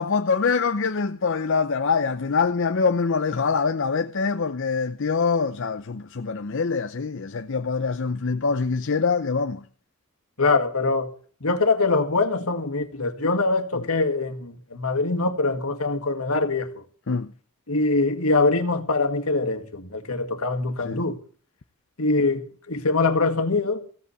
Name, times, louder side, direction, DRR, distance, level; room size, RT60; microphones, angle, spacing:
voice 1, 0.0-9.6 17.1-17.3 20.8-21.0, left 5 dB, 55° left, 0.6 m, -24 dB
voice 2, 10.4-11.1 11.4-16.7 17.7-21.2 22.0-23.8, left 3 dB, 75° left, 1.9 m, -23 dB
16.0 x 8.3 x 7.1 m
head